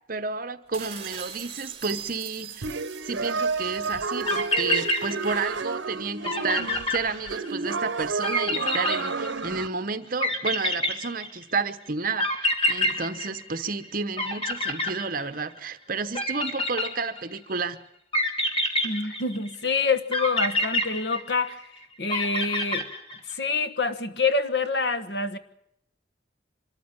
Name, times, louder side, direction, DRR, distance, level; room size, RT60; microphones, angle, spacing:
voice 1, 0.1-2.7 3.0-17.8, right 4 dB, 50° right, 11 dB, 1.0 m, -31 dB
sound 1, 0.7-5.4, right 8 dB, 30° right, 2.4 m, -42 dB
sound 2, 2.6-9.7, right 4 dB, 85° right, 0.8 m, -30 dB
sound 3, 4.0-4.1 4.3-5.6 5.9-6.0 6.2-7.7 8.2-9.6 10.2-11.5 12.2-13.9 14.2-15.6 16.1-17.4 18.1-19.6 20.1-21.6 22.1-23.3, left 1 dB, 30° left, 2.8 m, -27 dB
voice 2, 18.8-21.6 22.0-22.9 23.2-25.4, left 4 dB, 65° left, 10 dB, 1.3 m, -26 dB
25.0 x 13.5 x 8.8 m, 0.76 s
head